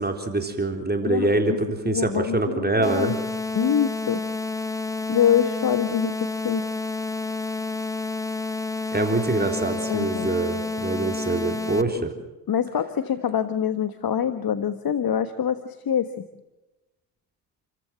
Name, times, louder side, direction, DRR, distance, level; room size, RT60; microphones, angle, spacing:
voice 1, 0.0-3.1 8.9-12.1, right 2 dB, 20° right, 5 dB, 3.9 m, -25 dB
voice 2, 1.0-1.6 1.8-3.1 3.5-4.2 5.1-6.6 9.9-10.3 12.5-16.3, left 8 dB, 45° left, 11 dB, 1.5 m, -25 dB
sound 1, 2.8-11.8, left 3 dB, 5° left, 1.3 m, -29 dB
29.5 x 15.0 x 7.7 m, 1.0 s
hypercardioid pair, 50°, 49 cm